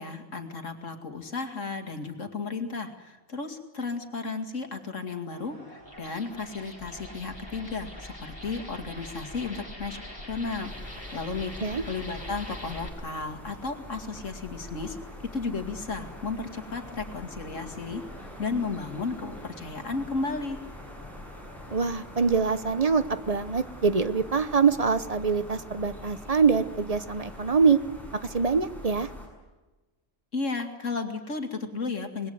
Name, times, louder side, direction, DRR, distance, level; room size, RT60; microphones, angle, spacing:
voice 1, 0.0-10.0 10.3-10.7 11.1-15.0 15.3-20.6 30.3-32.3, left 4 dB, 80° left, 5 dB, 2.7 m, -34 dB
sound 1, 5.3-10.4, right 1 dB, 15° right, 6.8 m, -51 dB
sound 2, 5.8-12.9, left 1 dB, 20° left, 4.5 m, -43 dB
sound 3, 10.6-29.3, left 1 dB, ahead, 7.7 m, -44 dB
voice 2, 21.7-27.8 28.2-29.1, right 5 dB, 35° right, 12 dB, 0.9 m, -24 dB
26.0 x 20.0 x 8.1 m, 1.2 s
omnidirectional pair, 1.3 m